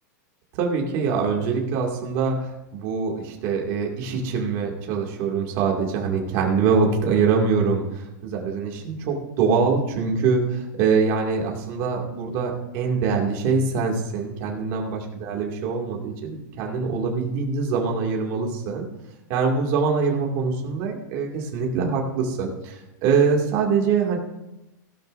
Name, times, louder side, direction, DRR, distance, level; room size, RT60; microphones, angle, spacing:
voice 1, 0.5-18.9 19.3-24.2, right 5 dB, 35° right, 0 dB, 2.3 m, -24 dB
16.5 x 12.0 x 2.6 m, 0.95 s
supercardioid pair, 175°, 10 cm